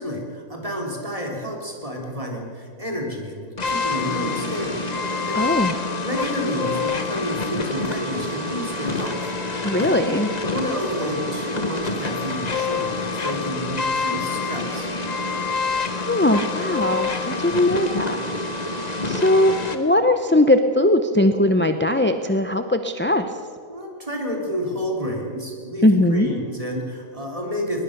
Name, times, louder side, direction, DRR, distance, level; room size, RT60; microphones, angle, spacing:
voice 1, 0.0-4.9 5.2-5.5 6.0-10.0 10.4-14.9 23.7-27.8, equal, 25° right, 1 dB, 3.8 m, -30 dB
sound 1, 3.6-19.8, left 3 dB, 30° left, 1.4 m, -27 dB
voice 2, 5.3-5.7 9.6-10.3 15.9-18.2 19.0-23.3 25.8-26.3, left 1 dB, 10° left, 7 dB, 0.5 m, -19 dB
21.0 x 21.0 x 6.7 m, 2.2 s
omnidirectional pair, 1.5 m